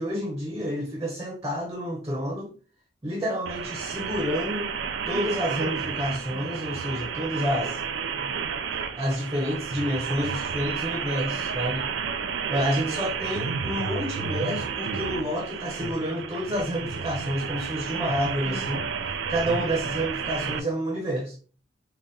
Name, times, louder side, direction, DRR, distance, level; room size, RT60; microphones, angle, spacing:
voice 1, 0.0-2.5 3.0-4.7 5.1-7.8 9.0-11.9 12.5-18.9 19.3-21.4, equal, 20° right, 0.6 m, -29 dB
sound 1, 3.5-20.6, right 6 dB, 80° right, 0.4 m, -31 dB
3.9 x 2.2 x 3.7 m
head